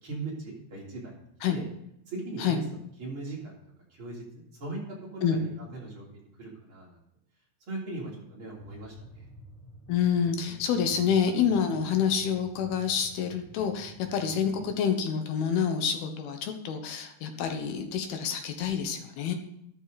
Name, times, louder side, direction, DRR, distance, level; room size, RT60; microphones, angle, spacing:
voice 1, 0.0-1.1 1.5-1.7 2.1-2.6 3.0-3.6 3.9-4.2 4.6-4.8 5.1-6.0 6.4-7.0 7.7-9.3, right 2 dB, 35° right, -4 dB, 3.7 m, -39 dB
sound 1, 8.5-14.7, equal, 10° left, 0.8 m, -51 dB
voice 2, 9.9-19.3, left 7 dB, 75° left, 6 dB, 2.9 m, -27 dB
14.0 x 12.5 x 4.1 m, 0.76 s
omnidirectional pair, 4.6 m